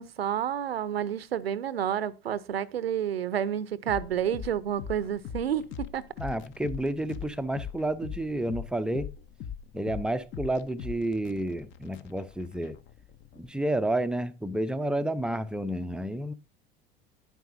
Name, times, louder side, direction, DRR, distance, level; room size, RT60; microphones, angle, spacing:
voice 1, 0.0-6.0, right 9 dB, 75° right, 0.7 m, -30 dB
sound 1, 3.9-13.5, left 8 dB, 40° left, 1.0 m, -41 dB
voice 2, 6.2-9.1 9.7-12.8 13.4-16.3, right 1 dB, 5° right, 0.5 m, -30 dB
10.5 x 9.1 x 2.6 m
figure-of-eight pair, 75°, 30 cm